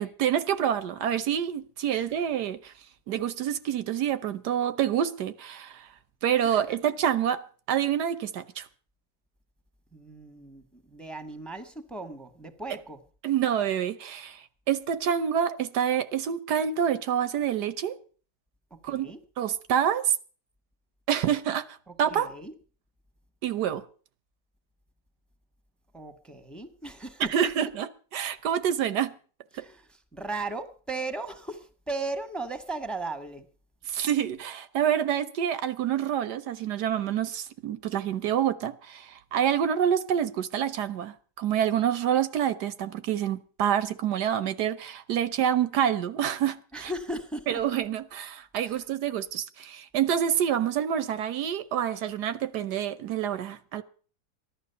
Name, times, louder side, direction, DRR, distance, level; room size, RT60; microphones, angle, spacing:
voice 1, 0.0-2.7 3.1-5.9 6.2-8.7 13.2-18.0 18.8-20.2 21.1-22.3 23.4-23.8 27.3-29.1 29.5-29.6 33.9-46.9 47.5-53.8, right 9 dB, 80° right, 1.5 m, -27 dB
voice 2, 9.9-13.0 18.7-19.2 21.9-22.5 25.9-27.5 29.5-33.5 46.7-47.6 48.6-48.8, right 2 dB, ahead, 1.4 m, -37 dB
15.0 x 11.5 x 6.8 m
omnidirectional pair, 1.8 m